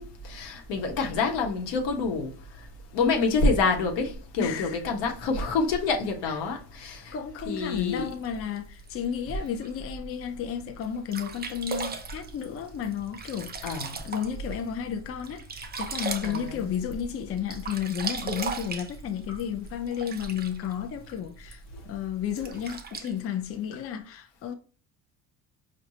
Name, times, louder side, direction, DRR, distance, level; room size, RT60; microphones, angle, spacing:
voice 1, 0.0-2.3 2.9-7.1 7.5-8.1 13.6-14.0 16.2-16.6, left 4 dB, 75° left, 1.1 m, -27 dB
voice 2, 4.4-4.8 6.2-6.4 7.1-24.5, left 8 dB, 35° left, 0.5 m, -33 dB
Sink (filling or washing), 7.7-9.7 10.3-10.4 10.8-10.9 11.1-14.6 15.0-17.1 17.4-20.7 21.5-21.6 22.3-23.1, right 5 dB, 25° right, 0.6 m, -37 dB
4.7 x 2.3 x 2.7 m
supercardioid pair, 75°, 42 cm